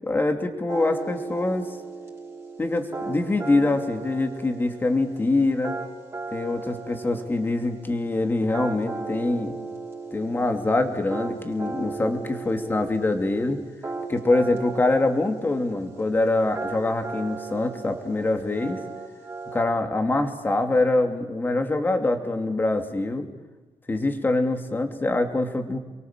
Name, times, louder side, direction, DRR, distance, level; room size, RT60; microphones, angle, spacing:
voice 1, 0.0-1.7 2.6-5.8 6.3-9.6 10.1-13.6 14.1-18.8 19.5-23.3 23.9-25.8, left 2 dB, 20° left, 5 dB, 2.7 m, -24 dB
sound 1, 0.7-19.6, right 3 dB, 25° right, 5.1 m, -37 dB
29.0 x 23.0 x 7.5 m, 1.2 s
wide cardioid pair, 145°, 10 cm